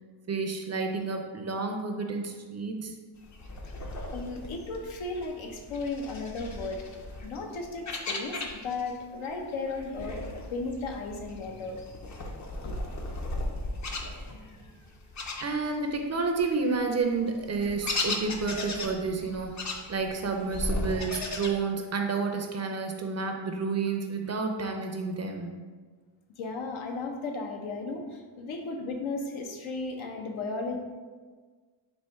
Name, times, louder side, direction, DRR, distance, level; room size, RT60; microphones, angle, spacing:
voice 1, 0.3-2.9 15.4-25.5, right 4 dB, 35° right, 3 dB, 0.4 m, -30 dB
sound 1, 3.2-9.0 9.2-16.0 16.4-21.5, left 2 dB, 35° left, 0.5 m, -37 dB
voice 2, 4.1-6.8 7.2-11.8 12.6-12.8 26.4-30.8, left 3 dB, 80° left, 3 dB, 0.7 m, -35 dB
4.3 x 2.5 x 3.4 m, 1.5 s
cardioid pair, 85°, 48 cm